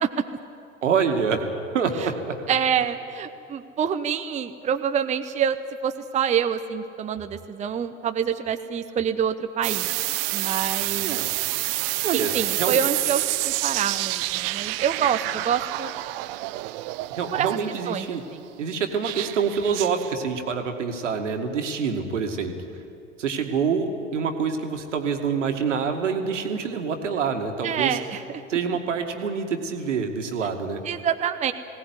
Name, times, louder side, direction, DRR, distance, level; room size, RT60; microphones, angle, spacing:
voice 1, 0.8-1.4 1.7-2.4 11.0-11.3 12.0-12.8 17.1-18.2 18.6-22.5 23.2-28.0 28.5-30.8, right 6 dB, 70° right, 5 dB, 2.2 m, -26 dB
voice 2, 2.5-5.6 5.8-9.9 10.3-11.2 12.1-15.9 17.3-17.5 17.9-18.4 27.6-28.2 30.9-31.5, right 8 dB, 20° right, 8 dB, 0.8 m, -26 dB
sound 1, 9.6-18.0 19.0-20.1, right 19 dB, 50° right, 0.7 m, -28 dB
20.0 x 17.5 x 9.6 m, 2.7 s
figure-of-eight pair, 80°, 38 cm